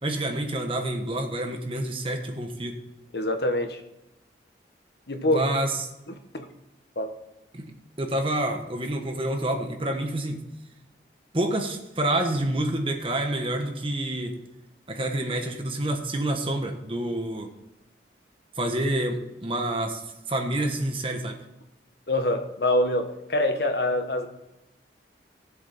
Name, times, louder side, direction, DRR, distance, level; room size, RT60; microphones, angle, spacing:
voice 1, 0.0-2.8 5.3-5.8 7.5-7.7 8.0-10.4 11.3-14.4 14.9-17.5 18.6-20.0 20.3-21.4, right 1 dB, 30° right, 4 dB, 1.4 m, -28 dB
voice 2, 3.1-3.8 5.1-5.5 6.1-6.5 6.9-7.1 22.1-24.3, left 1 dB, 65° left, 6 dB, 1.3 m, -25 dB
16.5 x 7.5 x 4.3 m, 0.92 s
head